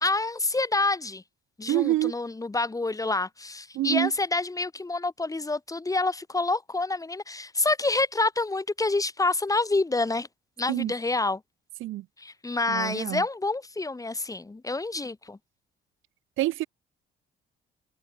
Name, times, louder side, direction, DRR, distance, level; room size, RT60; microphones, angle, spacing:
voice 1, 0.0-1.2 1.6-10.3 10.6-11.4 12.2-15.4, left 3 dB, 15° left, 1.4 m, -27 dB
voice 2, 1.7-2.1 3.7-4.1 10.7-10.9 11.8-12.0 12.7-13.2 16.4-16.7, right 16 dB, 85° right, 0.9 m, -26 dB
cardioid pair, 90°, 20 cm